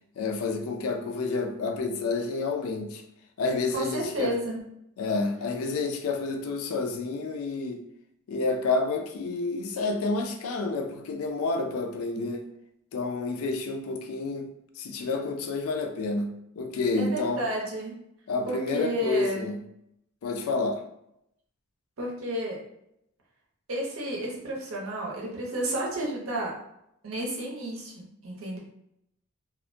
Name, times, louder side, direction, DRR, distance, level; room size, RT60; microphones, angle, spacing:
voice 1, 0.2-3.0 3.4-4.3 5.0-7.8 8.3-12.5 12.9-14.5 14.8-16.3 16.6-17.4 18.3-19.6 20.2-20.8, left 3 dB, 85° left, 5 dB, 0.4 m, -29 dB
voice 2, 3.7-4.6 16.9-18.0 18.5-19.5 22.0-22.6 23.7-26.5 27.0-28.6, right 1 dB, 70° right, -2 dB, 0.7 m, -31 dB
2.3 x 2.1 x 2.5 m, 0.79 s
head